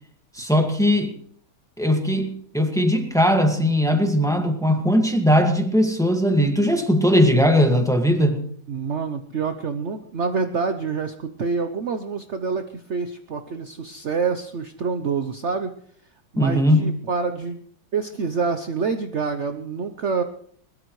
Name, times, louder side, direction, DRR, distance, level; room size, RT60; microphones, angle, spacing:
voice 1, 0.3-1.1 1.8-8.4 16.4-16.8, equal, ahead, 4 dB, 1.6 m, -19 dB
voice 2, 8.7-15.7 16.3-17.6 17.9-20.2, right 5 dB, 60° right, 8 dB, 0.7 m, -27 dB
22.0 x 20.5 x 3.2 m, 0.62 s
omnidirectional pair, 2.3 m